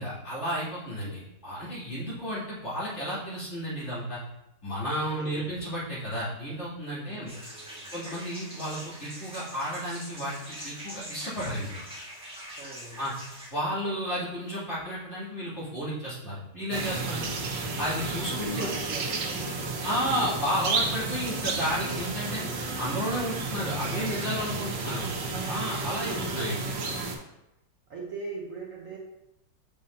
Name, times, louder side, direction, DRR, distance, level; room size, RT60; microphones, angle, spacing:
voice 1, 0.0-4.2 4.6-7.3 7.9-11.8 13.0-13.1 13.5-17.3 17.8-18.7 19.8-22.4 22.8-25.0 25.5-26.8, equal, 40° left, -10 dB, 2.9 m, -32 dB
voice 2, 5.1-5.5 7.0-7.9 12.5-13.1 17.2-17.9 18.4-20.1 24.5-25.3 26.1-26.7 27.9-29.0, right 3 dB, 55° right, -2 dB, 1.1 m, -43 dB
sound 1, 7.3-13.5, equal, 5° right, 1.4 m, -43 dB
sound 2, 16.7-27.2, right 3 dB, 85° right, 1.6 m, -32 dB
7.5 x 5.5 x 2.7 m, 0.89 s
omnidirectional pair, 1.9 m